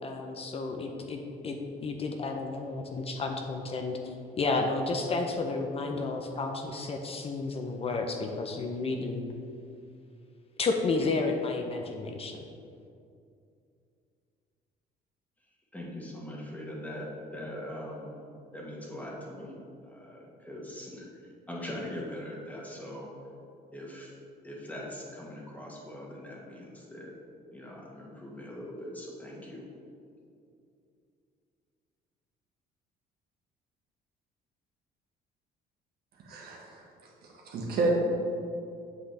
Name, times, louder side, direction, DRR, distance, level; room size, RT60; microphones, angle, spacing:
voice 1, 0.0-9.2 10.6-12.4, left 3 dB, 35° left, 3 dB, 0.6 m, -32 dB
voice 2, 15.7-18.1 18.5-19.6 19.8-21.1 21.5-23.1 23.7-24.1 24.4-27.1 27.5-29.7, left 1 dB, 10° left, -3 dB, 1.5 m, -41 dB
voice 3, 36.2-36.8 37.4-37.9, right 3 dB, 65° right, -2 dB, 1.6 m, -30 dB
8.0 x 5.7 x 3.4 m, 2.5 s
cardioid pair, 110°, 17 cm